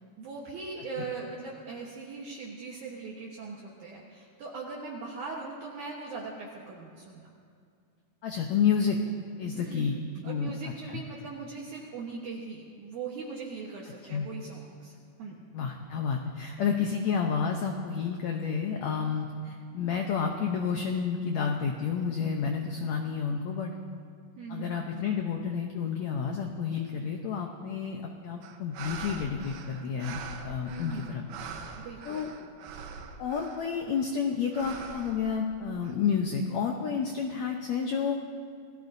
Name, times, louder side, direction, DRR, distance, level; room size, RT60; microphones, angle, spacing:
voice 1, 0.2-7.3 9.5-15.4 24.4-25.1 30.7-31.3 31.8-32.3, right 4 dB, 65° right, -3 dB, 2.4 m, -40 dB
voice 2, 8.2-9.0 9.4-10.0 10.2-10.7 14.1-14.3 15.5-23.7 24.5-31.2 32.0-32.3 33.2-38.2, left 6 dB, 80° left, 2 dB, 1.6 m, -30 dB
sound 1, 28.4-34.0 34.5-35.9, right 5 dB, 85° right, 2.9 m, -43 dB
28.0 x 17.0 x 2.7 m, 2.3 s
omnidirectional pair, 4.3 m